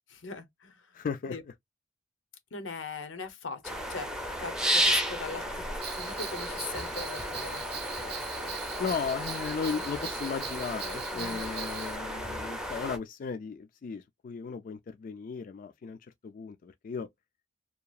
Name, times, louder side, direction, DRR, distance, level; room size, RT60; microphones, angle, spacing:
voice 1, 0.2-1.0 1.3-1.4 2.5-4.1 4.4-5.6 5.9-7.7 7.9-8.6 11.1-11.4, left 4 dB, 90° left, 0.7 m, -40 dB
voice 2, 0.9-1.4 8.8-17.1, left 5 dB, 45° left, 0.3 m, -36 dB
sound 1, 3.6-13.0, equal, 5° right, 0.6 m, -33 dB
Bell, 5.8-12.0, right 8 dB, 55° right, 0.6 m, -41 dB
2.8 x 2.3 x 2.3 m
head